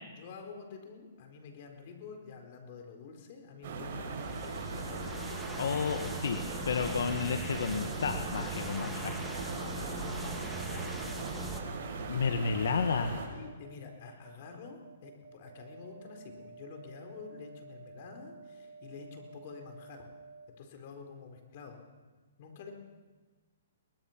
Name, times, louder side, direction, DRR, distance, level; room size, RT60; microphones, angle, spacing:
voice 1, 0.2-5.5 8.3-9.1 9.5-11.0 13.3-20.1 20.6-21.8 22.4-22.7, left 5 dB, 45° left, 4 dB, 4.4 m, -48 dB
sound 1, 3.6-13.3, right 4 dB, 45° right, 5.6 m, -39 dB
sound 2, 4.0-11.6, right 1 dB, ahead, 1.8 m, -42 dB
voice 2, 5.6-6.4 6.6-9.2 12.1-13.2, left 5 dB, 75° left, 7 dB, 1.4 m, -31 dB
sound 3, 8.8-20.5, right 4 dB, 65° right, 3.5 m, -52 dB
23.0 x 19.5 x 5.9 m, 1.3 s
hypercardioid pair, 155°, 0 cm